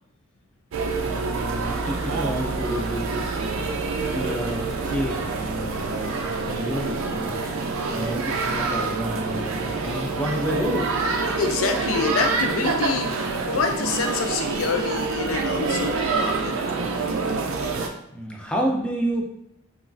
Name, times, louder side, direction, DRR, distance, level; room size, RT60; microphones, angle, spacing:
sound 1, 0.7-17.9, right 4 dB, 80° right, 0.4 m, -26 dB
voice 1, 1.0-3.7 4.1-10.9 18.1-19.2, equal, 5° left, 0 dB, 0.4 m, -30 dB
voice 2, 11.4-13.1 13.5-16.5, left 5 dB, 85° left, 5 dB, 0.4 m, -26 dB
3.0 x 2.3 x 2.5 m, 0.81 s
head